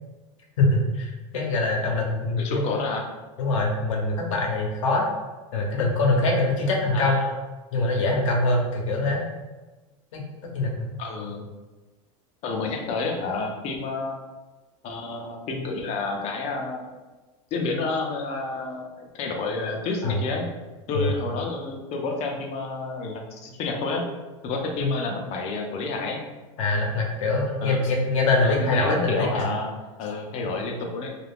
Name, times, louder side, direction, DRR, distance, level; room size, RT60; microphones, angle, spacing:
voice 1, 0.6-2.7 3.4-5.1 5.5-7.2 7.7-9.3 10.1-10.2 10.5-10.9 20.0-20.2 20.9-21.1 24.8-24.9 26.6-29.5, left 2 dB, 80° left, 0 dB, 0.8 m, -24 dB
voice 2, 2.0-3.1 6.9-7.3 11.0-11.5 12.4-14.2 14.8-16.9 17.5-20.4 20.9-24.1 24.4-26.2 27.6-27.8 28.4-29.7 30.0-31.2, left 3 dB, 45° left, 2 dB, 0.6 m, -29 dB
2.4 x 2.3 x 3.4 m, 1.2 s
supercardioid pair, 125°, 16 cm